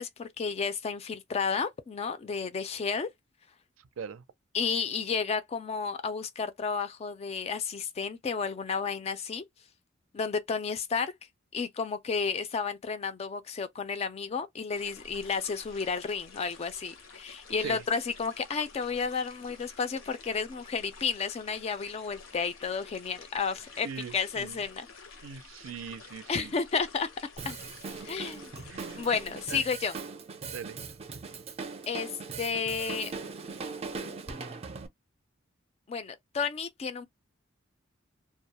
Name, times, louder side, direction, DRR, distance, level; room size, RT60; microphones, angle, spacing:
voice 1, 0.0-3.1 4.5-9.4 10.1-11.1 11.5-24.9 26.3-27.1 27.4-27.6 28.0-28.5 29.0-30.0 31.9-32.1 32.4-33.1 35.9-37.1, left 5 dB, 30° left, 0.3 m, -32 dB
sound 1, 14.7-29.5, left 4 dB, 90° left, 0.8 m, -51 dB
voice 2, 23.8-24.6 25.2-26.5 28.7-29.1 29.5-29.6 30.5-30.8, right 7 dB, 85° right, 0.4 m, -40 dB
Drum kit, 27.4-34.9, right 4 dB, 30° right, 0.4 m, -40 dB
2.2 x 2.0 x 2.8 m
head